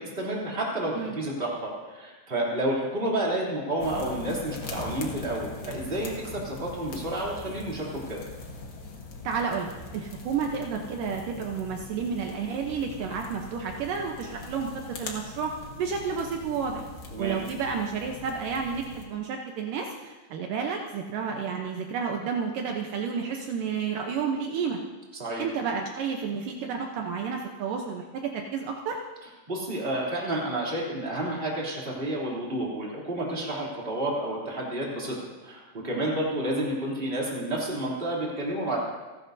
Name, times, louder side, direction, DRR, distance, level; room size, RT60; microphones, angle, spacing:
voice 1, 0.0-8.2 17.1-17.4 25.2-25.4 29.5-35.2 35.4-38.8, right 1 dB, 15° right, -4 dB, 2.9 m, -30 dB
sound 1, 3.8-19.1, left 3 dB, 50° left, 1.6 m, -41 dB
voice 2, 9.2-14.7 15.0-15.5 15.8-16.8 17.2-24.8 25.4-29.0, right 6 dB, 75° right, 2 dB, 2.5 m, -31 dB
29.5 x 12.0 x 2.7 m, 1.2 s
omnidirectional pair, 4.1 m